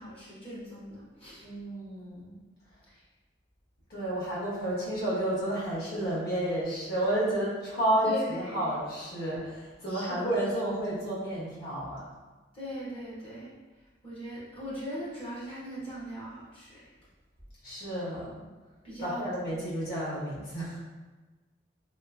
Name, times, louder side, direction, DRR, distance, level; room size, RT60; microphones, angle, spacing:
voice 1, 0.0-1.5 2.9-3.0 8.0-8.7 9.9-10.3 12.5-13.5 14.0-16.9 18.8-19.3, right 1 dB, 30° left, -8 dB, 0.8 m, -40 dB
voice 2, 1.4-2.3 3.9-12.0 17.6-18.4 19.0-20.8, right 1 dB, 60° left, -9 dB, 1.3 m, -31 dB
2.9 x 2.7 x 2.4 m, 1.2 s
head